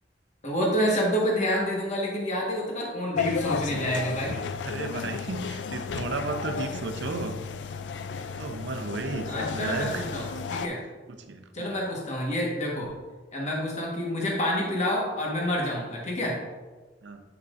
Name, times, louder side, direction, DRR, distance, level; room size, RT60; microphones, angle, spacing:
voice 1, 0.4-4.4 9.2-10.8 11.5-12.9 13.3-16.4, equal, 40° left, -2 dB, 1.4 m, -28 dB
sound 1, 3.2-10.7, left 5 dB, 70° left, 0.4 m, -33 dB
voice 2, 4.6-7.4 8.4-10.1 11.1-11.8 17.0-17.2, right 3 dB, 70° right, 6 dB, 0.7 m, -34 dB
8.4 x 5.6 x 2.6 m, 1.3 s
head